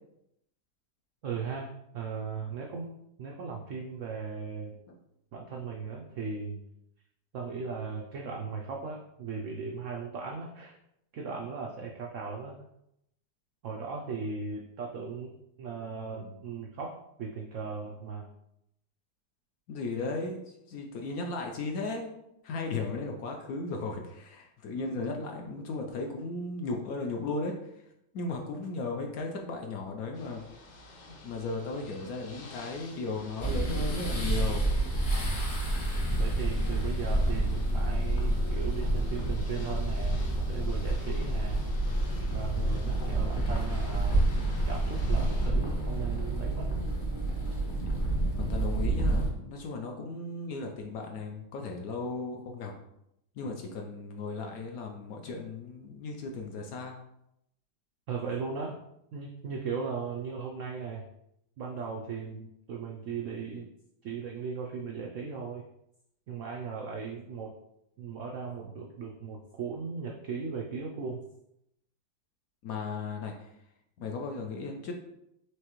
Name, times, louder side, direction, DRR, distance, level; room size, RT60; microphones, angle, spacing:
voice 1, 1.2-2.9 3.2-4.8 5.3-6.6 7.3-10.8 11.1-12.5 13.6-18.3 36.2-41.7 42.3-44.2 44.6-46.7 58.1-58.7 59.1-61.0 61.6-63.7 64.0-65.6 66.3-67.5 68.0-71.2, right 5 dB, 80° right, 0 dB, 0.6 m, -37 dB
voice 2, 19.7-22.1 22.4-27.8 28.1-30.4 31.1-34.7 48.4-52.7 53.4-56.9 72.6-73.5 74.0-74.9, left 3 dB, 70° left, 2 dB, 0.9 m, -36 dB
Ocean / Boat Water vehicle, 30.1-45.5, left 2 dB, 85° left, 1.5 m, -51 dB
sound 1, 33.4-49.3, right 1 dB, 35° left, 0.8 m, -29 dB
4.8 x 3.2 x 3.0 m, 0.81 s
omnidirectional pair, 1.9 m